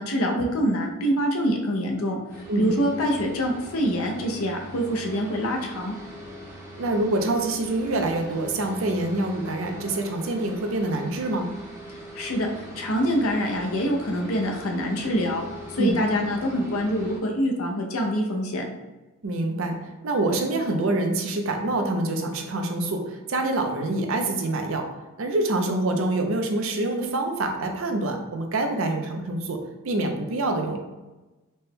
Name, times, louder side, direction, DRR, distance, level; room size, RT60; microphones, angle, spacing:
voice 1, 0.0-2.2 2.6-5.9 12.1-12.5 12.8-15.4 15.7-18.6, equal, 80° left, 1 dB, 0.6 m, -25 dB
sound 1, 2.3-17.2, equal, 15° right, 0.7 m, -41 dB
voice 2, 6.8-11.5 15.8-16.0 19.2-19.8 20.0-24.9 25.2-29.6 29.8-30.8, right 2 dB, 65° right, 4 dB, 0.5 m, -26 dB
4.2 x 2.2 x 3.4 m, 1.1 s
head